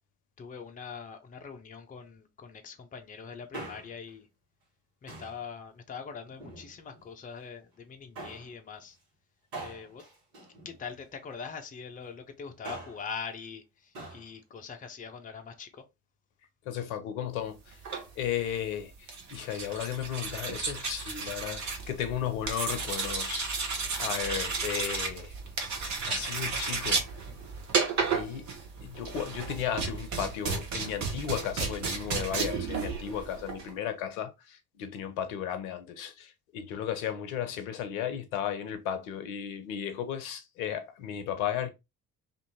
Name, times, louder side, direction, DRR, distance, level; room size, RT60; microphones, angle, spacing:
voice 1, 0.4-4.3 5.0-9.0 9.6-10.0 10.6-15.8, left 6 dB, 20° left, 0.5 m, -43 dB
Male speech man speaking, 3.3-4.1 5.1-5.4 6.3-7.1 8.1-8.5 9.5-11.2 12.4-13.1 13.9-14.3 14.6-14.7, right 2 dB, 65° right, 1.4 m, -44 dB
voice 2, 16.7-17.8 18.2-23.5 24.0-25.3 26.1-27.0 28.0-28.5 28.8-41.7, left 9 dB, 70° left, 0.6 m, -34 dB
sound 1, 17.7-33.7, right 4 dB, 40° right, 0.9 m, -33 dB
2.6 x 2.5 x 2.8 m
figure-of-eight pair, 45°, 44 cm